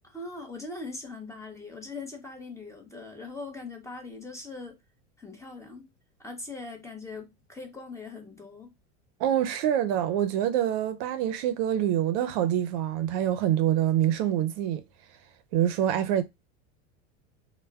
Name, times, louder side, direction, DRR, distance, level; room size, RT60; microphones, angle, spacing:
voice 1, 0.0-4.8 5.2-5.9 6.2-8.7, left 3 dB, 10° left, 0.7 m, -41 dB
voice 2, 9.2-14.8 15.5-16.2, right 11 dB, 60° right, 0.5 m, -25 dB
2.1 x 2.0 x 3.4 m
supercardioid pair, 115°, 37 cm